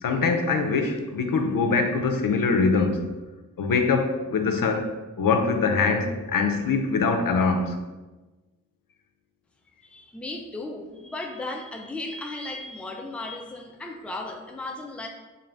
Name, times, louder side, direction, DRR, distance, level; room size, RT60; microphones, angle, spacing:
voice 1, 0.0-3.1 3.6-4.9 5.2-7.8, left 4 dB, 85° left, 5 dB, 0.5 m, -23 dB
voice 2, 9.8-15.1, left 2 dB, 5° left, 2 dB, 0.4 m, -35 dB
3.9 x 2.4 x 3.3 m, 1.2 s
wide cardioid pair, 55°, 32 cm